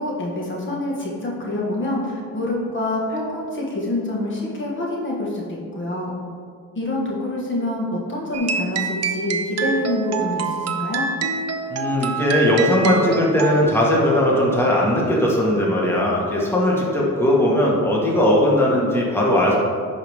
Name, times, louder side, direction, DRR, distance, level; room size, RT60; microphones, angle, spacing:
voice 1, 0.0-6.1 6.7-11.1, left 1 dB, 40° left, -3 dB, 1.7 m, -26 dB
sound 1, 8.3-13.6, right 5 dB, 55° right, 0.7 m, -26 dB
voice 2, 11.7-19.5, left 1 dB, 10° left, -4 dB, 1.7 m, -18 dB
10.5 x 4.8 x 3.7 m, 2.2 s
cardioid pair, 90°, 30 cm